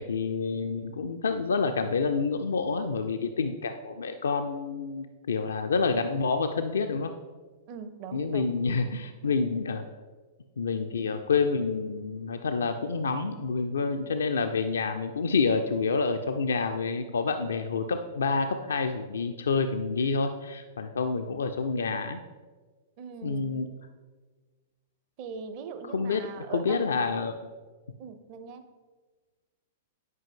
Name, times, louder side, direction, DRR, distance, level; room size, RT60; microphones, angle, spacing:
voice 1, 0.0-7.1 8.1-9.8 10.6-22.2 23.2-23.7 25.9-27.3, left 4 dB, 65° left, 7 dB, 0.4 m, -28 dB
voice 2, 7.7-8.5 23.0-23.6 25.2-26.9 28.0-28.6, right 6 dB, 40° right, 9 dB, 0.7 m, -41 dB
9.4 x 5.1 x 3.6 m, 1.4 s
figure-of-eight pair, 100°, 0 cm